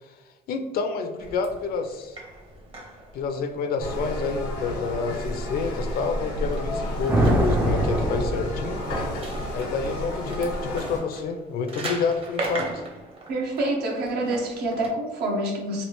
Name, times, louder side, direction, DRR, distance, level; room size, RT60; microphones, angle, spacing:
voice 1, 0.5-2.2 3.1-8.8 9.5-12.9, left 4 dB, 65° left, 7 dB, 0.4 m, -28 dB
sound 1, 1.2-14.9, right 2 dB, 35° right, 0.8 m, -40 dB
sound 2, 3.8-11.0, equal, 90° left, 1.0 m, -31 dB
sound 3, 7.1-9.2, right 1 dB, 10° right, 0.3 m, -23 dB
voice 2, 13.3-15.9, right 1 dB, 75° right, 1 dB, 0.8 m, -27 dB
3.1 x 2.4 x 3.0 m, 1.1 s
cardioid pair, 110°, 17 cm